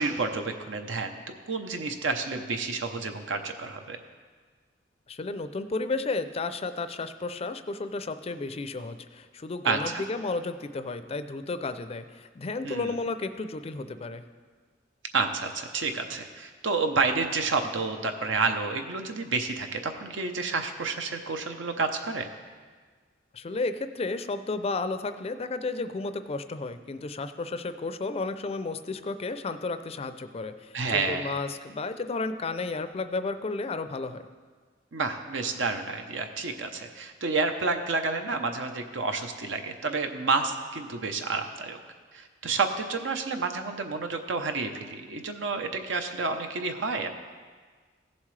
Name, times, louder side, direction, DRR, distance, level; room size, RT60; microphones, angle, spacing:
voice 1, 0.0-4.0 9.6-10.0 12.6-13.0 15.1-22.3 30.7-31.4 34.9-41.8 42.1-47.1, right 4 dB, 75° right, 6 dB, 0.8 m, -30 dB
voice 2, 5.1-14.3 23.3-34.3, left 3 dB, 35° left, 11 dB, 0.4 m, -33 dB
16.0 x 7.3 x 3.2 m, 1.5 s
head